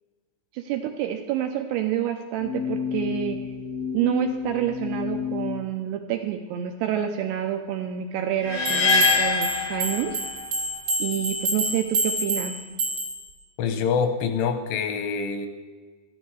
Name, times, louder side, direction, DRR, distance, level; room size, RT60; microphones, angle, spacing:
voice 1, 0.5-3.4 3.9-10.2 11.0-12.6, right 10 dB, 85° right, 5 dB, 2.5 m, -28 dB
sound 1, 2.3-5.6, left 7 dB, 50° left, 0.9 m, -30 dB
sound 2, 8.5-10.6, left 5 dB, 65° left, 1.6 m, -23 dB
sound 3, 8.6-13.3, right 2 dB, 45° right, 1.8 m, -28 dB
voice 2, 13.6-15.5, left 6 dB, 90° left, 7 dB, 3.5 m, -25 dB
13.5 x 12.0 x 4.8 m, 1.4 s
omnidirectional pair, 5.3 m